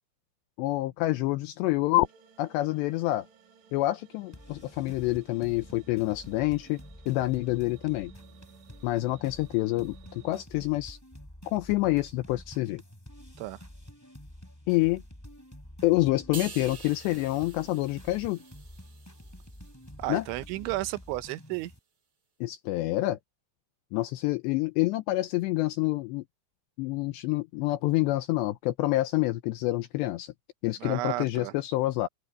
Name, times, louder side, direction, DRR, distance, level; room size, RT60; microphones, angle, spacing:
voice 1, 0.6-2.1 2.4-3.3 3.7-6.8 7.1-8.1 8.8-11.0 11.5-12.8 14.7-15.0 15.8-18.4 20.1-20.2 22.4-23.2 23.9-26.2 26.8-30.3 30.6-32.1, left 18 dB, 80° left, 2.6 m, -27 dB
sound 1, 2.0-10.4, right 6 dB, 65° right, 4.7 m, -57 dB
sound 2, 4.3-21.8, equal, 5° left, 3.2 m, -49 dB
sound 3, 16.3-19.9 20.2-20.5, right 6 dB, 40° right, 5.6 m, -46 dB
voice 2, 20.0-21.7 30.8-31.5, right 18 dB, 80° right, 3.2 m, -33 dB
omnidirectional pair, 5.6 m